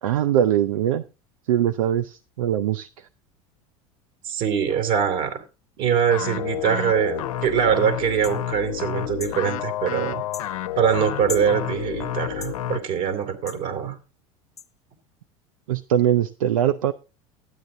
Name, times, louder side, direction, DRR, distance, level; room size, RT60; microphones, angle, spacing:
voice 1, 0.0-1.0 1.5-2.9 15.7-16.9, right 10 dB, 75° right, 12 dB, 0.5 m, -21 dB
voice 2, 4.2-5.4 5.8-10.2 10.8-13.9, right 8 dB, 55° right, 8 dB, 2.7 m, -23 dB
sound 1, 6.1-12.8, left 12 dB, 75° left, 0.7 m, -30 dB
sound 2, 8.2-8.4 9.2-9.4 10.3-10.5 11.3-11.5 12.4-12.6 13.5-13.6 14.6-14.7, left 5 dB, 20° left, 1.0 m, -36 dB
12.5 x 9.2 x 3.7 m, 0.30 s
hypercardioid pair, 75°, 18 cm